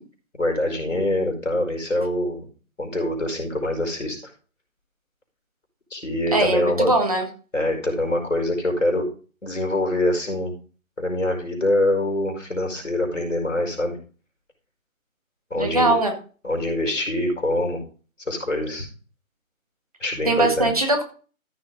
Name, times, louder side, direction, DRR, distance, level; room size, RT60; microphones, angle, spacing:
voice 1, 0.4-2.5 2.8-4.3 5.9-6.9 7.5-9.1 9.4-10.5 11.0-14.0 15.5-16.0 16.4-17.8 18.3-18.9 20.0-20.9, left 1 dB, 60° left, 3 dB, 5.0 m, -24 dB
voice 2, 6.3-7.3 15.6-16.1 20.2-21.0, right 2 dB, 25° right, 4 dB, 1.8 m, -20 dB
14.0 x 6.3 x 4.0 m, 0.37 s
figure-of-eight pair, 160°, 42 cm